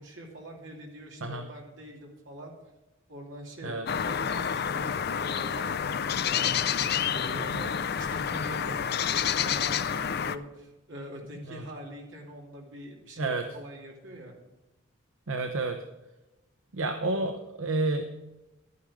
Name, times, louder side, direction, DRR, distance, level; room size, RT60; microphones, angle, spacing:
voice 1, 0.0-2.5 3.1-14.3, right 1 dB, 65° right, 0 dB, 2.7 m, -44 dB
sound 1, 3.9-10.4, left 8 dB, 50° left, 0.4 m, -29 dB
voice 2, 15.3-15.8 16.7-18.0, right 2 dB, 80° right, 5 dB, 0.9 m, -30 dB
12.0 x 9.6 x 4.9 m, 1.0 s
head